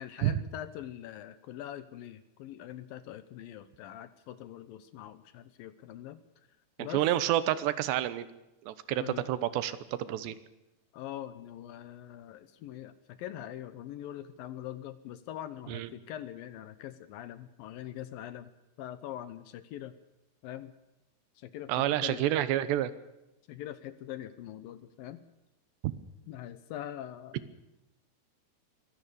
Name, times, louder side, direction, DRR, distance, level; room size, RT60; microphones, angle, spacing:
voice 1, 0.0-6.2 6.8-7.1 8.9-9.3 10.2-10.3 10.9-18.5 18.8-19.9 20.4-20.7 21.4-22.3 23.5-25.2 26.2-27.4, left 12 dB, 75° left, 13 dB, 2.4 m, -43 dB
voice 2, 6.8-8.3 8.7-9.0 9.3-10.4 15.7-15.9 21.7-22.9 25.8-25.9, right 13 dB, 85° right, 14 dB, 3.2 m, -29 dB
23.5 x 16.5 x 6.9 m, 0.95 s
omnidirectional pair, 4.9 m